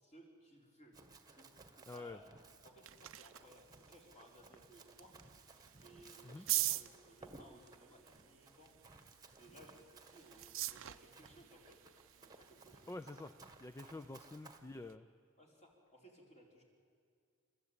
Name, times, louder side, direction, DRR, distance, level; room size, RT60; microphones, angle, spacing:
voice 1, 0.0-0.9 1.3-1.5 1.8-2.2 2.6-5.1 5.7-8.7 9.3-11.8 12.2-12.9 15.4-16.6, equal, 35° left, -1 dB, 4.2 m, -61 dB
Run, 0.9-14.6, right 3 dB, 15° right, 1.4 m, -60 dB
voice 2, 1.9-2.2 6.2-6.5 12.9-13.3 13.6-15.1, left 2 dB, 15° left, 11 dB, 0.5 m, -48 dB
sound 1, 2.4-15.0, right 17 dB, 60° right, 0.6 m, -46 dB
29.0 x 14.0 x 8.8 m, 2.3 s
head